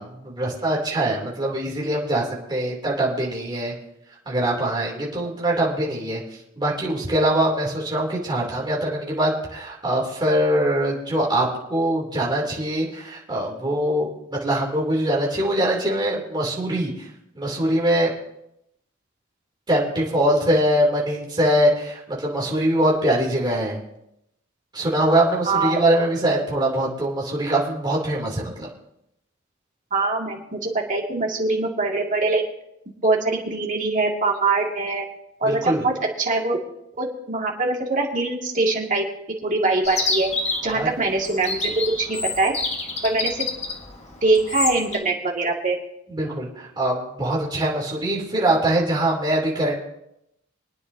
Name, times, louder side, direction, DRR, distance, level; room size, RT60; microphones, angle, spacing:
voice 1, 0.0-3.7 4.3-6.2 6.6-17.1 17.3-18.1 19.7-23.8 24.7-28.7 35.4-35.8 40.7-40.9 46.1-49.8, right 1 dB, 20° right, -3 dB, 2.9 m, -23 dB
voice 2, 29.9-32.4 33.0-35.1 35.4-36.6 37.0-39.1 39.4-40.3 40.6-42.5 43.0-43.5 44.2-45.8, right 3 dB, 40° right, -1 dB, 2.1 m, -23 dB
Chirp tweet, 39.8-45.0, left 3 dB, 35° left, 1.6 m, -28 dB
24.5 x 9.7 x 2.7 m, 0.81 s
head